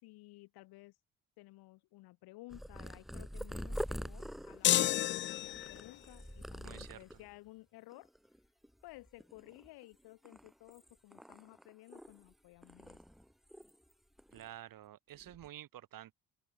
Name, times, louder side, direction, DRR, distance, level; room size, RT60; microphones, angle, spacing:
voice 1, 0.0-1.0 1.4-8.1 8.8-13.0, left 20 dB, 65° left, 4.7 m, -55 dB
Purr, 2.5-7.3 7.9-8.4 8.6-9.8 10.2-12.3 12.6-13.9 14.2-14.5 15.1-15.5, equal, ahead, 1.2 m, -45 dB
sound 1, 4.6-6.0, left 12 dB, 30° left, 0.4 m, -30 dB
voice 2, 6.6-7.2 14.3-16.1, right 12 dB, 55° right, 3.0 m, -50 dB
open air
figure-of-eight pair, 45°, 41 cm